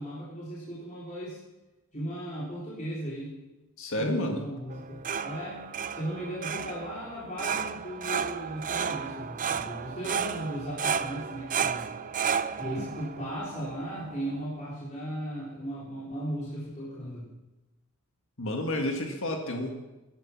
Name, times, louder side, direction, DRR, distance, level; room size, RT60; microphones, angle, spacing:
voice 1, 0.0-1.4 1.9-3.4 4.0-11.9 12.6-17.3, equal, 35° left, -7 dB, 3.9 m, -36 dB
voice 2, 3.8-4.4 12.8-12.9 18.4-19.7, left 1 dB, 65° left, 3 dB, 1.8 m, -30 dB
sound 1, 4.7-14.4, right 7 dB, 35° right, 0.6 m, -33 dB
18.5 x 11.0 x 6.0 m, 1.1 s
head